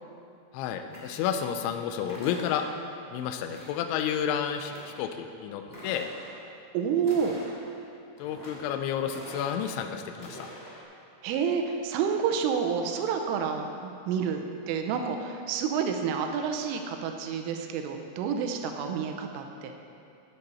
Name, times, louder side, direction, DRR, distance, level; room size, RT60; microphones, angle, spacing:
voice 1, 0.5-2.7 3.1-6.1 8.2-10.5, left 8 dB, 85° left, 6 dB, 2.7 m, -31 dB
sound 1, 0.9-1.5 2.0-2.9 3.5-4.1 4.4-5.1 5.6-6.4 7.0-7.8 8.2-8.7 9.0-9.8 10.1-10.8, equal, 15° left, 0.7 m, -46 dB
voice 2, 6.7-7.4 11.2-14.4 14.7-19.7, right 6 dB, 85° right, 5 dB, 3.2 m, -29 dB
15.0 x 8.2 x 4.2 m, 2.5 s
omnidirectional pair, 5.9 m